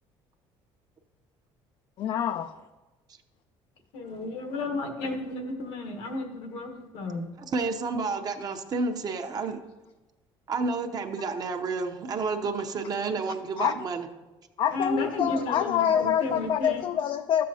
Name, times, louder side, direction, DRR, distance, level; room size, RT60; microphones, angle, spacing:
voice 1, 2.0-2.5 13.6-13.7 14.6-17.5, left 9 dB, 50° left, 8 dB, 0.4 m, -26 dB
voice 2, 3.9-7.3 14.7-16.8, left 2 dB, 85° left, 4 dB, 1.4 m, -33 dB
voice 3, 7.4-9.6 10.5-14.1, right 4 dB, 40° right, 5 dB, 0.8 m, -30 dB
12.5 x 7.4 x 2.8 m, 1.1 s
cardioid pair, 120°, 10 cm